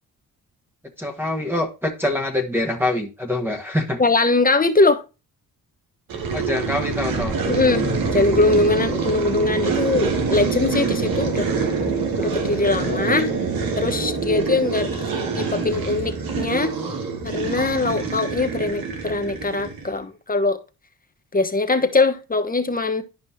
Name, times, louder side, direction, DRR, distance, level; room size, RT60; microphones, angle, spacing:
voice 1, 1.0-4.0 6.3-7.8, left 1 dB, 5° right, 1.6 m, -25 dB
voice 2, 4.0-5.0 7.5-11.5 12.2-13.3 13.8-16.7 17.2-20.6 21.3-23.0, left 3 dB, 25° left, 1.2 m, -21 dB
sound 1, 6.1-20.0, right 4 dB, 75° right, 2.2 m, -25 dB
11.5 x 5.2 x 2.8 m
cardioid pair, 80°, 36 cm